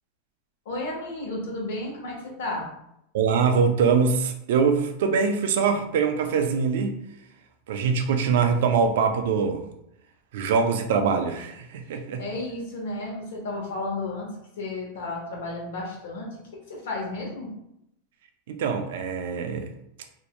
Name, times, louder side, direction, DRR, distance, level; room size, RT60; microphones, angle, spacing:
voice 1, 0.6-2.7 12.2-14.3 14.6-16.4 16.7-17.5, left 2 dB, 80° left, -1 dB, 0.9 m, -32 dB
voice 2, 3.1-6.9 7.7-9.6 10.3-12.2 18.5-19.7, right 5 dB, 70° right, 6 dB, 0.3 m, -23 dB
2.5 x 2.1 x 2.9 m, 0.78 s
supercardioid pair, 165°, 0 cm